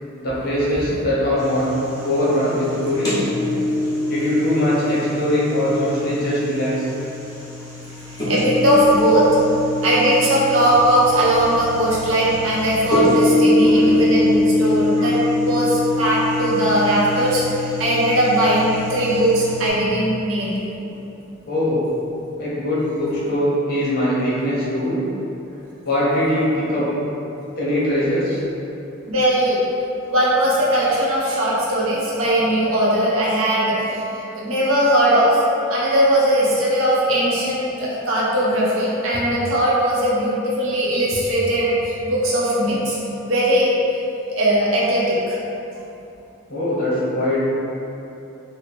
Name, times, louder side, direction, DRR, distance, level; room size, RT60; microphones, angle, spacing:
voice 1, 0.2-1.7 2.0-3.2 3.8-6.7 21.5-21.8 22.4-25.0 25.8-26.9 27.6-28.4 46.5-47.5, left 1 dB, 50° left, -8 dB, 0.8 m, -21 dB
sound 1, 1.4-19.7, left 1 dB, 20° left, 0.9 m, -23 dB
voice 2, 8.1-9.3 9.8-15.2 15.4-20.5 29.1-29.6 30.1-35.4 35.7-43.0 43.3-43.7 44.4-45.4, right 1 dB, 85° right, -6 dB, 0.7 m, -19 dB
2.9 x 2.1 x 4.0 m, 2.9 s
head